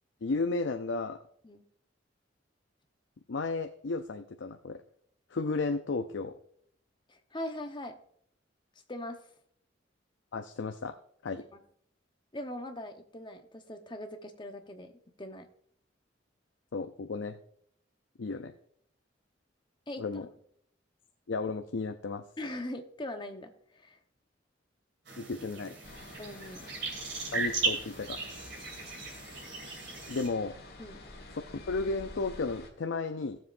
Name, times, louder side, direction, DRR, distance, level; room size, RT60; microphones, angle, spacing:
voice 1, 0.2-1.2 3.3-4.8 5.3-6.3 10.3-10.9 11.2-11.4 16.7-17.4 18.2-18.5 20.0-20.3 21.3-22.2 25.2-25.7 27.3-28.2 30.1-30.6 31.5-33.4, left 3 dB, 75° left, 7 dB, 0.5 m, -33 dB
voice 2, 7.1-8.0 8.9-9.2 11.5-11.6 12.3-14.9 15.2-15.5 19.9-20.0 22.4-24.0 26.2-26.6 30.8-31.0, left 1 dB, 25° left, 5 dB, 1.0 m, -41 dB
sound 1, 25.0-30.3, right 4 dB, 65° right, 2.8 m, -36 dB
sound 2, 25.8-32.7, left 2 dB, 55° left, 1.8 m, -49 dB
16.5 x 7.4 x 2.6 m, 0.66 s
head